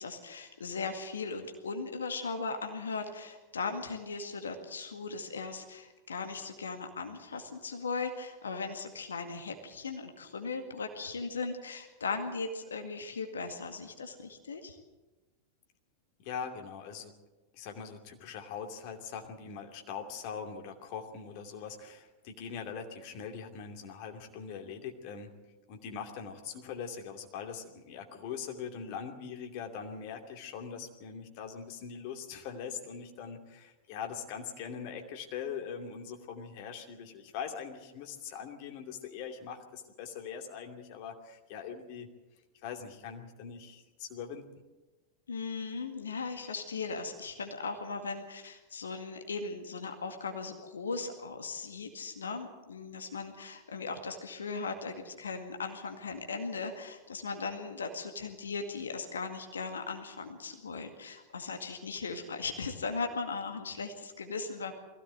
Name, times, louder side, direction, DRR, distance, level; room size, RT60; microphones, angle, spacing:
voice 1, 0.0-14.8 45.3-64.7, left 4 dB, 70° left, 5 dB, 2.0 m, -38 dB
voice 2, 16.2-17.2 17.5-25.4 25.7-42.1 42.6-44.5, left 7 dB, 45° left, 4 dB, 2.6 m, -42 dB
21.5 x 16.5 x 7.8 m, 1.1 s
figure-of-eight pair, 90°, 0 cm